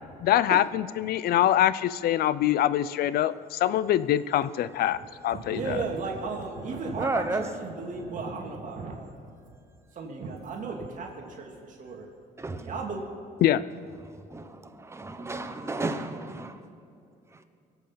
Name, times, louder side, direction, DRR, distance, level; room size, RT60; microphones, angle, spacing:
voice 1, 0.2-5.6 13.4-13.6, left 12 dB, 65° left, 17 dB, 0.5 m, -24 dB
voice 2, 4.9-9.4 9.9-12.1 12.6-13.0, right 4 dB, 50° right, 0 dB, 2.2 m, -35 dB
voice 3, 7.0-7.4 12.4-12.7 14.1-16.6 17.3-17.4, right 2 dB, 15° right, 8 dB, 1.0 m, -32 dB
23.0 x 8.0 x 5.8 m, 2.5 s
cardioid pair, 110°, 17 cm